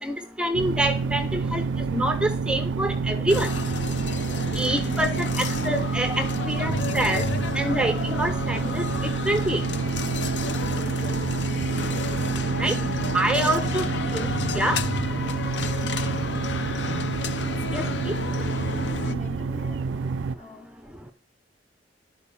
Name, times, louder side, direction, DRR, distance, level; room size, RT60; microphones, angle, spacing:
voice 1, 0.0-1.6 1.9-3.5 4.6-7.2 7.5-9.6 12.6-12.8 13.1-13.8 14.1-14.8 17.7-18.1, right 1 dB, 5° right, 0.6 m, -26 dB
sound 1, 0.5-20.4, right 4 dB, 85° right, 0.4 m, -28 dB
sound 2, 3.3-19.1, left 4 dB, 75° left, 0.8 m, -32 dB
voice 2, 18.8-20.0 20.4-20.8, left 4 dB, 40° left, 2.4 m, -42 dB
11.5 x 4.6 x 7.0 m
head